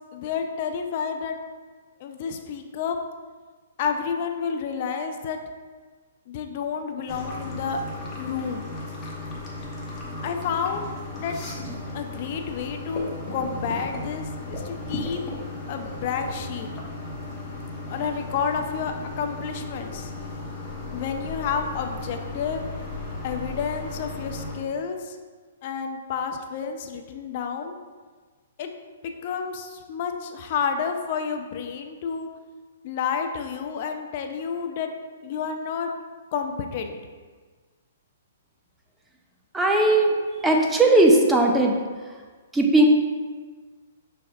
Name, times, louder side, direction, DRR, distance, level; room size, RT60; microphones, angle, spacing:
voice 1, 0.1-1.4 2.0-3.0 3.8-5.4 6.3-7.8 8.2-8.7 10.2-11.4 11.9-15.2 15.7-16.7 17.9-20.1 20.9-22.7 23.2-25.2 25.6-27.8 28.6-28.7 29.0-32.3 32.8-34.9 35.2-35.9 36.3-37.0, left 6 dB, 45° left, 5 dB, 0.4 m, -30 dB
sound 1, 7.1-24.6, left 2 dB, 25° left, 0.9 m, -35 dB
voice 2, 39.5-40.1 40.4-41.8 42.5-42.8, right 2 dB, 10° right, 1 dB, 0.5 m, -18 dB
6.2 x 3.4 x 2.3 m, 1.4 s
hypercardioid pair, 135°, 0 cm